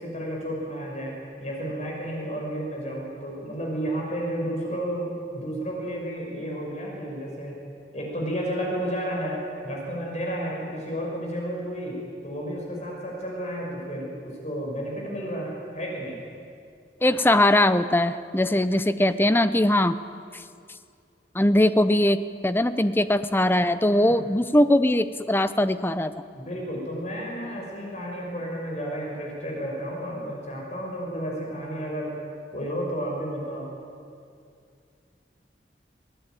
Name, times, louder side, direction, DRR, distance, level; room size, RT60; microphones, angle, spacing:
voice 1, 0.0-7.6 7.9-16.2 24.0-24.3 26.3-32.2 32.5-33.7, equal, 40° left, -1 dB, 5.6 m, -32 dB
voice 2, 17.0-20.0 20.3-20.4 21.3-26.1, left 1 dB, 10° left, 12 dB, 0.7 m, -21 dB
24.5 x 18.0 x 9.2 m, 2.3 s
head